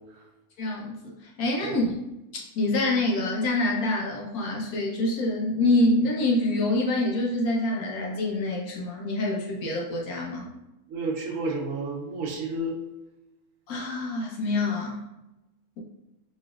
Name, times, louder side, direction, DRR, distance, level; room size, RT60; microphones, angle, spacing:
voice 1, 0.6-1.9 2.3-10.5 13.7-15.0, left 2 dB, 85° left, -2 dB, 1.4 m, -26 dB
voice 2, 10.9-12.8, right 2 dB, 65° right, 0 dB, 1.1 m, -30 dB
4.3 x 3.3 x 2.4 m, 0.96 s
omnidirectional pair, 1.5 m